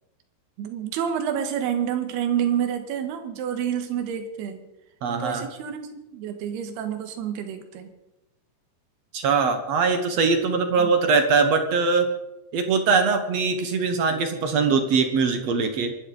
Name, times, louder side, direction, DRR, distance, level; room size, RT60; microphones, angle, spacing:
voice 1, 0.6-4.6 5.2-7.9 10.8-10.9, right 9 dB, 80° right, 7 dB, 3.4 m, -28 dB
voice 2, 5.0-5.5 9.1-12.1 12.5-15.9, right 4 dB, 60° right, 7 dB, 1.7 m, -22 dB
24.5 x 12.0 x 4.1 m, 0.93 s
omnidirectional pair, 4.7 m